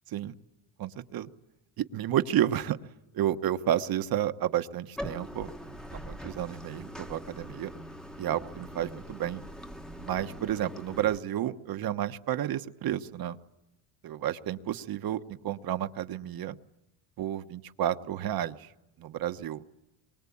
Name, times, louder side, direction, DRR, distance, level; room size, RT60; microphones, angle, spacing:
voice 1, 0.8-1.3 1.8-2.8 3.1-7.7 8.2-9.4 10.0-13.4 14.0-16.5 17.2-18.7 19.0-19.6, right 11 dB, 50° right, 10 dB, 1.2 m, -31 dB
Bathtub (filling or washing), 5.0-11.2, equal, ahead, 1.1 m, -42 dB
26.5 x 23.5 x 8.6 m, 0.95 s
cardioid pair, 135°, 48 cm